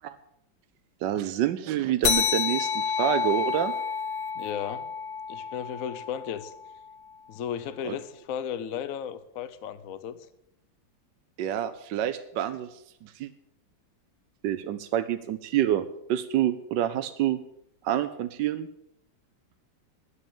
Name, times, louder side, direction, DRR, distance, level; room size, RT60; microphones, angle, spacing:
voice 1, 1.0-3.7 7.8-8.0 11.4-12.7 13.0-13.3 14.4-17.4 17.8-18.7, right 11 dB, 75° right, 10 dB, 1.3 m, -27 dB
sound 1, 2.0-7.0, left 7 dB, 80° left, 1.8 m, -29 dB
voice 2, 4.3-4.9 5.3-6.5 7.3-10.3, left 8 dB, 60° left, 12 dB, 1.0 m, -35 dB
10.0 x 10.0 x 7.1 m, 0.76 s
omnidirectional pair, 2.1 m